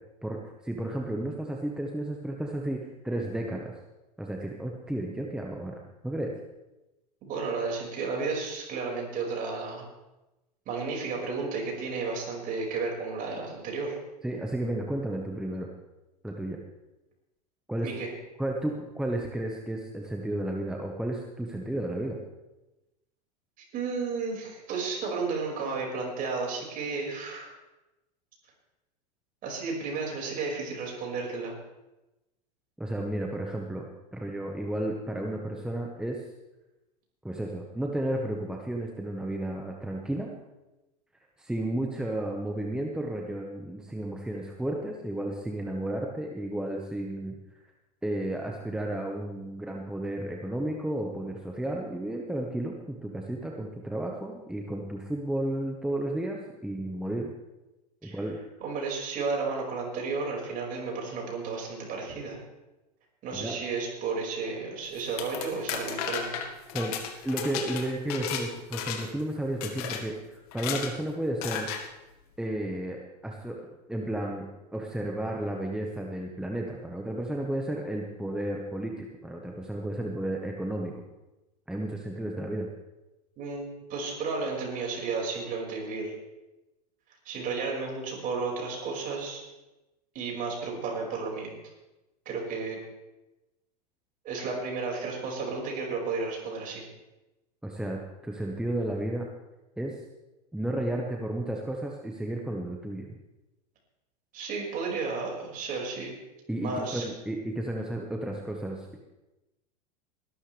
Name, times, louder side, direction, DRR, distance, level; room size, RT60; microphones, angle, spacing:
voice 1, 0.6-3.7 4.2-6.3 14.2-15.7 16.2-16.6 17.7-17.9 18.4-22.2 32.8-36.2 37.2-40.3 41.4-47.4 48.0-57.3 58.0-58.4 63.3-63.6 66.7-71.7 72.4-74.5 74.7-80.9 81.7-82.7 97.6-99.2 99.8-99.9 100.5-103.1 106.5-109.0, right 1 dB, 5° right, 0 dB, 1.4 m, -33 dB
voice 2, 7.2-9.9 10.7-14.0 17.8-18.1 23.7-27.5 29.4-31.5 58.0-58.2 58.6-62.4 63.2-66.4 83.4-86.1 87.2-89.4 90.1-91.5 92.3-92.8 94.2-96.8 104.3-106.1 106.5-107.0, right 4 dB, 45° right, -1 dB, 5.8 m, -33 dB
sound 1, 65.0-68.4 68.7-69.2 69.6-70.0 70.5-70.9 71.4-71.8, left 8 dB, 65° left, 2.0 m, -34 dB
20.0 x 12.5 x 3.5 m, 1.0 s
hypercardioid pair, 110°, 21 cm